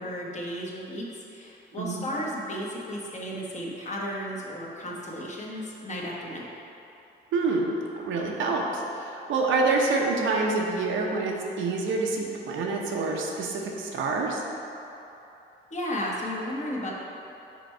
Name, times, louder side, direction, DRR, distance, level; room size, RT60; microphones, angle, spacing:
voice 1, 0.0-6.5 15.7-16.9, equal, 35° left, -3 dB, 1.2 m, -34 dB
voice 2, 1.8-2.1 7.3-7.7 8.0-14.4, right 3 dB, 75° right, 0 dB, 0.8 m, -27 dB
5.1 x 4.5 x 4.4 m, 2.9 s
cardioid pair, 90°, 20 cm